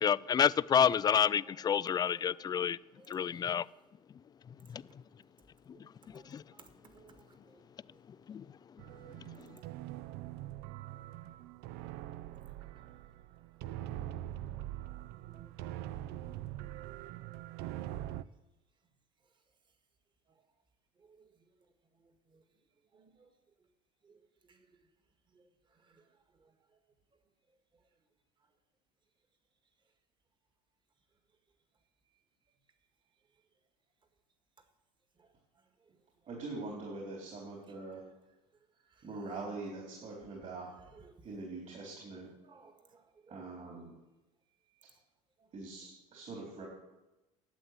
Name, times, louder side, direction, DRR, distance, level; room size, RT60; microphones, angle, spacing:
voice 1, 0.0-2.8 3.1-3.7 4.7-4.8 6.1-6.4 8.3-8.4, left 8 dB, 25° left, 19 dB, 0.3 m, -29 dB
voice 2, 1.1-2.4 2.9-3.4 4.9-5.0 5.7-8.3 9.5-9.6 11.3-11.4 12.0-12.2 13.8-14.2 15.3-15.5 21.0-21.3 22.0-22.4 22.9-23.3 24.0-24.2 24.4-24.8 25.3-26.5 35.2-35.3 35.8-36.0 37.4-37.8 38.8-39.2 40.5-41.2 42.4-43.5 43.8-43.9 44.8-44.9 45.4-45.5 45.8-46.0, right 4 dB, 25° right, 7 dB, 1.9 m, -63 dB
sound 1, 8.8-18.2, right 13 dB, 65° right, 0.5 m, -43 dB
voice 3, 36.3-38.0 39.0-40.7 41.2-42.3 43.3-43.9 45.5-46.6, right 3 dB, 40° right, -1 dB, 3.9 m, -43 dB
11.5 x 7.9 x 9.5 m, 1.0 s
supercardioid pair, 105°, 18 cm